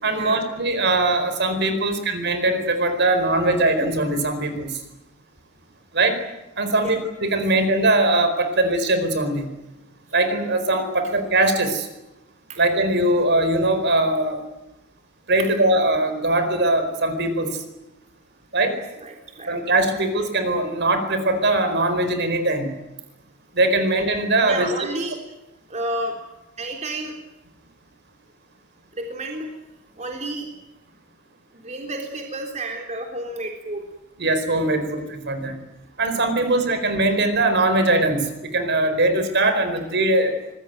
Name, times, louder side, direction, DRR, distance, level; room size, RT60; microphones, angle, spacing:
voice 1, 0.0-4.7 5.9-6.2 6.6-9.5 10.1-11.9 12.6-14.4 15.3-17.6 18.5-18.8 19.5-22.7 23.5-24.7 34.2-35.5 36.0-40.3, right 2 dB, 50° right, 9 dB, 4.6 m, -21 dB
voice 2, 18.6-19.6 24.4-25.2 25.7-26.2 26.6-27.1 28.9-29.5 30.0-30.5 31.5-33.8, right 1 dB, 30° right, 3 dB, 3.6 m, -31 dB
25.5 x 20.5 x 9.2 m, 0.97 s
head